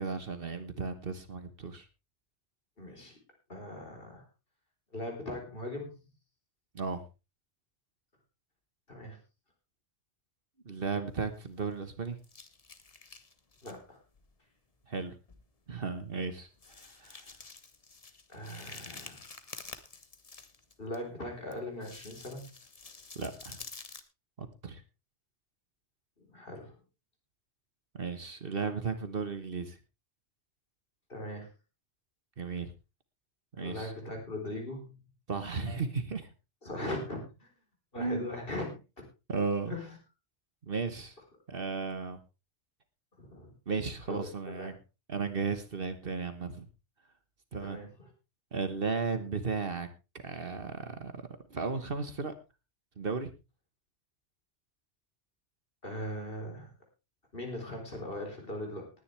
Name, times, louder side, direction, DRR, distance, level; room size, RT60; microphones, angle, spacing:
voice 1, 0.0-1.9 6.7-7.0 10.6-12.2 14.9-15.2 15.7-16.5 16.7-17.2 23.1-23.6 24.4-24.8 27.9-29.8 32.4-32.7 33.5-33.9 35.3-36.3 38.0-38.3 39.3-39.8 40.6-41.1 41.5-42.2 43.7-44.8 45.1-46.7 47.5-47.8 48.5-49.9 50.2-52.3 53.0-53.3, right 4 dB, 55° right, 10 dB, 1.5 m, -35 dB
voice 2, 2.8-3.2 3.5-4.3 4.9-6.0 8.9-9.2 13.6-14.0 18.3-19.2 20.8-22.4 26.2-26.8 31.1-31.5 33.6-35.0 36.6-37.5 37.9-38.8 39.7-40.0 43.2-43.5 44.1-44.2 44.5-44.7 47.6-48.1 55.8-56.7 57.3-58.9, left 1 dB, 50° left, 2 dB, 4.3 m, -39 dB
sound 1, 11.1-11.9 12.2-13.8 14.1-14.3 15.0-15.1 15.3-15.5 15.9-16.0 16.5-21.0 21.5-24.0, left 4 dB, 35° left, 1.2 m, -49 dB
19.0 x 10.5 x 3.3 m, 0.28 s
omnidirectional pair, 1.2 m